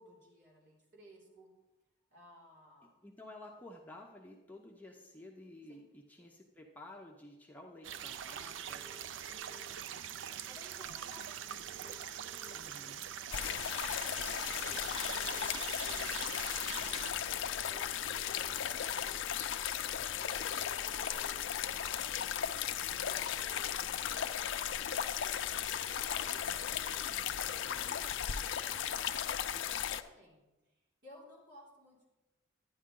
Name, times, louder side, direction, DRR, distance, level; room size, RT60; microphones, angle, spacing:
voice 1, 0.0-1.5 2.1-3.0 5.7-5.8 6.2-6.4 9.7-12.9 13.3-16.2 16.8-22.0 22.7-32.1, equal, 60° right, -4 dB, 3.4 m, -59 dB
voice 2, 3.0-8.9 12.5-13.1 27.6-28.0, left 1 dB, 10° left, 0 dB, 0.7 m, -52 dB
sound 1, 7.8-17.1, right 9 dB, 75° right, 0.4 m, -43 dB
sound 2, 8.5-9.5 11.5-12.4 14.4-15.4 17.3-18.3 20.2-21.2 23.2-23.6, right 3 dB, 10° right, 1.0 m, -59 dB
sound 3, 13.3-30.0, left 9 dB, 75° left, 0.5 m, -36 dB
11.0 x 10.0 x 3.8 m, 1.1 s
head